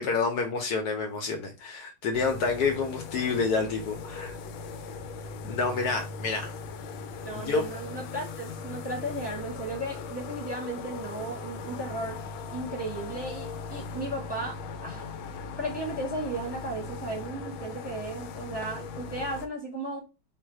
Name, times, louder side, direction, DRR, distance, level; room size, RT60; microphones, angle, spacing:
voice 1, 0.0-4.3 5.4-6.5 7.3-7.6, left 4 dB, 65° left, 1.1 m, -28 dB
sound 1, 2.1-19.5, left 4 dB, 80° left, 1.4 m, -39 dB
voice 2, 7.2-12.2 12.5-15.1 15.6-20.0, right 1 dB, 15° right, 1.1 m, -35 dB
3.9 x 2.6 x 4.6 m
omnidirectional pair, 2.2 m